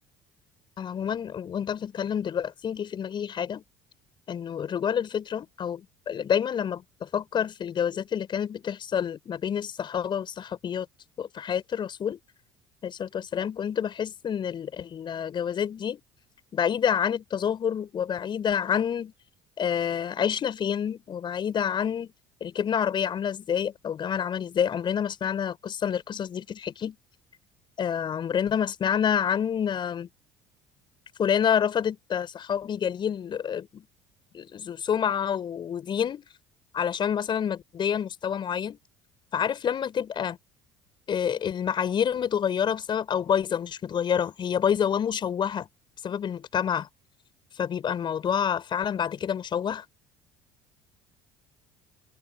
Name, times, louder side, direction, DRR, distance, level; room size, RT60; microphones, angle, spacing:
voice 1, 0.8-3.6 4.3-10.9 11.2-12.2 12.8-16.0 16.5-19.1 19.6-22.1 22.4-27.0 27.8-30.1 31.2-33.9 34.3-36.2 36.7-38.8 39.3-40.4 41.1-45.7 46.0-46.9 47.6-49.8, left 8 dB, 40° left, 5.8 m, -28 dB
hypercardioid pair, 60°, 12 cm